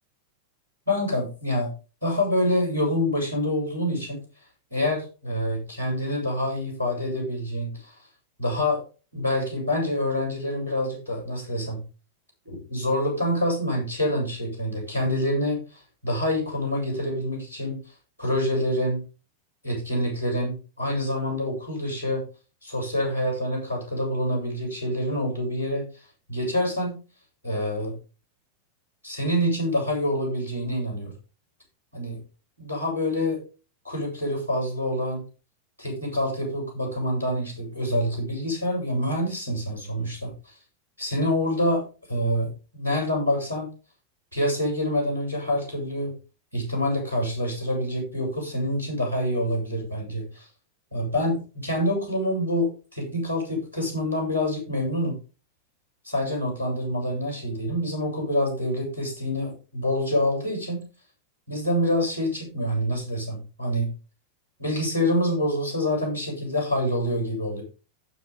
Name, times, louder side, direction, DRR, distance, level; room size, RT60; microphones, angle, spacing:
voice 1, 0.9-1.7 2.0-4.2 4.7-8.0 8.4-8.8 9.1-11.8 12.4-17.8 18.2-19.0 19.6-22.2 22.6-27.0 27.4-28.0 29.0-31.1 31.9-32.2 32.6-33.4 33.8-35.2 35.8-40.6 41.0-43.7 44.3-46.1 46.5-50.5 50.9-55.2 56.0-60.9 61.5-63.9 64.6-67.6, left 1 dB, 80° right, -2 dB, 7.6 m, -26 dB
15.5 x 6.5 x 3.7 m, 0.34 s
figure-of-eight pair, 90°, 0 cm